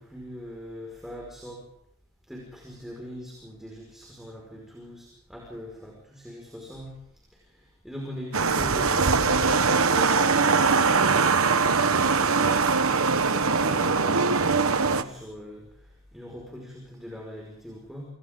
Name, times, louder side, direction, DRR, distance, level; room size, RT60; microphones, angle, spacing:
voice 1, 0.0-1.6 2.3-7.0 7.3-10.5 11.5-15.7 16.1-18.0, left 1 dB, ahead, -2 dB, 5.4 m, -40 dB
sound 1, 8.3-15.0, right 4 dB, 75° right, 1.2 m, -22 dB
29.0 x 27.5 x 3.9 m, 0.66 s
head